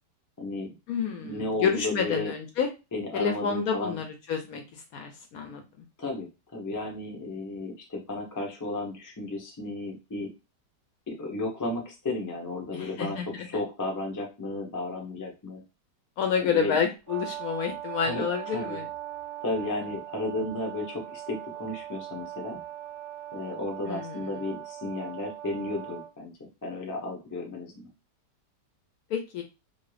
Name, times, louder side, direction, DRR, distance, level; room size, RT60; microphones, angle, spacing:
voice 1, 0.4-0.7 1.2-2.3 2.9-4.0 6.0-10.3 11.1-15.6 16.4-16.7 18.0-18.8 19.4-22.6 23.3-27.9, left 2 dB, 30° left, 0 dB, 0.3 m, -34 dB
voice 2, 0.9-2.7 3.1-5.6 12.7-13.5 16.2-18.9 23.9-24.4 29.1-29.4, left 6 dB, 70° left, 4 dB, 0.9 m, -29 dB
Brass instrument, 17.1-26.1, right 13 dB, 15° right, 0.8 m, -40 dB
2.7 x 2.6 x 3.2 m, 0.28 s
omnidirectional pair, 1.9 m